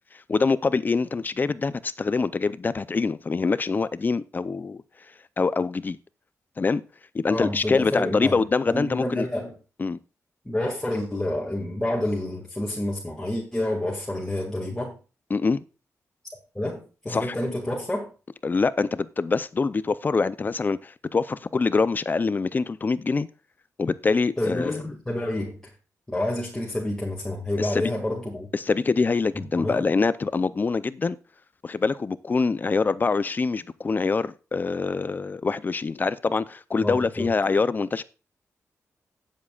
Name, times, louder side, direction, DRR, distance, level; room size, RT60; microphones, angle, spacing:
voice 1, 0.3-4.8 5.4-6.0 6.6-6.8 7.1-9.3 9.8-10.0 15.3-15.6 17.1-17.4 18.4-23.3 23.8-24.8 27.6-27.9 28.5-31.2 31.6-38.0, left 4 dB, 35° left, 0.5 m, -24 dB
voice 2, 7.3-9.5 10.5-15.0 16.6-18.1 24.4-25.6 26.1-28.5 29.5-29.9 36.8-37.3, left 1 dB, 10° left, 2.0 m, -29 dB
19.0 x 7.4 x 2.4 m
wide cardioid pair, 125°, 6 cm